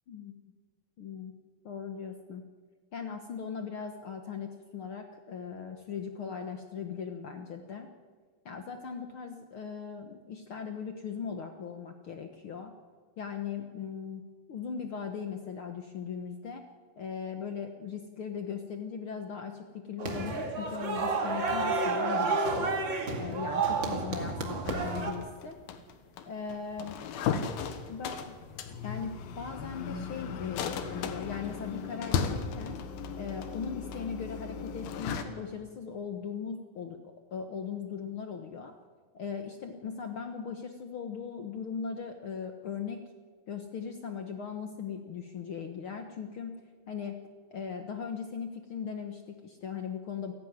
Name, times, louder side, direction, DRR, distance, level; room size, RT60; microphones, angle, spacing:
voice 1, 1.0-1.3 1.6-2.4 2.9-7.9 8.4-12.7 13.2-14.2 14.5-16.6 17.0-22.8 23.2-25.6 26.3-27.0 27.9-28.3 28.8-32.8 33.2-37.0 37.3-38.7 39.1-43.0 43.5-46.6 46.9-47.2 47.5-50.3, left 6 dB, 70° left, 5 dB, 1.2 m, -39 dB
sound 1, 20.0-25.1, right 3 dB, 35° right, 2.4 m, -30 dB
sound 2, 24.6-35.2, left 6 dB, 90° left, 3.2 m, -36 dB
28.5 x 12.0 x 9.7 m, 1.5 s
omnidirectional pair, 4.2 m